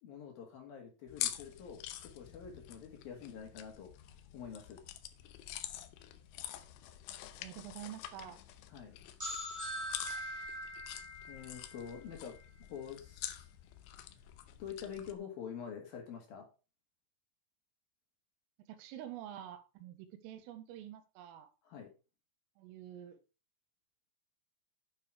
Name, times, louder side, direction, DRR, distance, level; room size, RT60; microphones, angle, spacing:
voice 1, 0.0-3.9 4.3-4.8 8.7-8.9 11.3-12.3 12.7-13.5 14.6-16.5 21.6-21.9, left 7 dB, 55° left, 3 dB, 3.2 m, -46 dB
sound 1, 1.1-15.2, left 12 dB, 80° left, 2.8 m, -46 dB
voice 2, 7.1-8.4 18.7-21.5 22.6-23.2, right 11 dB, 85° right, 8 dB, 3.9 m, -48 dB
sound 2, 9.2-12.8, equal, 10° right, 1.2 m, -43 dB
9.4 x 7.0 x 4.9 m, 0.31 s
omnidirectional pair, 5.8 m